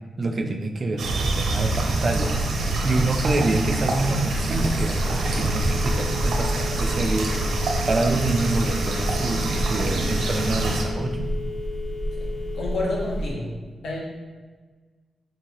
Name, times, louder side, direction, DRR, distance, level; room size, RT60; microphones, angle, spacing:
voice 1, 0.2-2.4 2.8-7.3 7.9-11.3, right 2 dB, 30° right, 5 dB, 0.3 m, -26 dB
sound 1, 1.0-10.8, right 2 dB, 80° right, 0.7 m, -26 dB
Telephone, 4.3-13.3, left 1 dB, 50° left, 0.6 m, -30 dB
voice 2, 12.5-13.5 13.8-14.0, left 2 dB, 80° left, -4 dB, 0.8 m, -28 dB
5.3 x 2.3 x 2.9 m, 1.4 s
wide cardioid pair, 175°, 0 cm